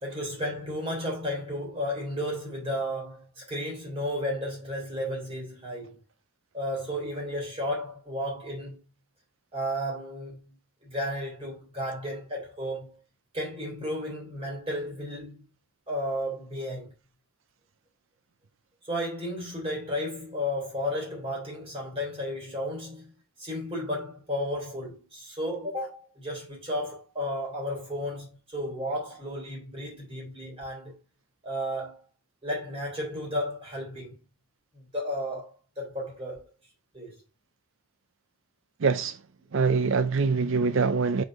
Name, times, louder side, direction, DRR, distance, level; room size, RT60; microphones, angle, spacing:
voice 1, 0.0-6.0 6.5-8.8 9.5-10.4 10.8-13.0 13.3-15.4 15.9-16.9 18.9-23.0 23.4-31.0 31.4-32.0 32.4-34.2 34.7-36.5 36.9-37.2, equal, 25° right, 3.0 m, -33 dB
voice 2, 38.8-39.2 39.5-41.2, right 4 dB, 55° right, 0.5 m, -24 dB
4.8 x 4.1 x 5.2 m
head